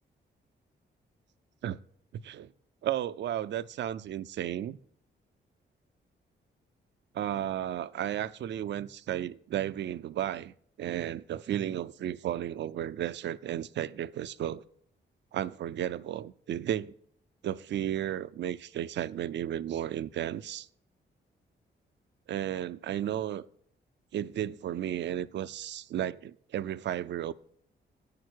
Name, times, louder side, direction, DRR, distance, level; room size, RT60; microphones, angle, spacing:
voice 1, 2.8-4.8 7.1-10.5 10.8-14.6 15.3-16.9 17.4-20.7 22.3-23.5 24.1-27.3, right 11 dB, 70° right, 0.5 m, -33 dB
9.3 x 6.6 x 6.2 m
cardioid pair, 90°, 19 cm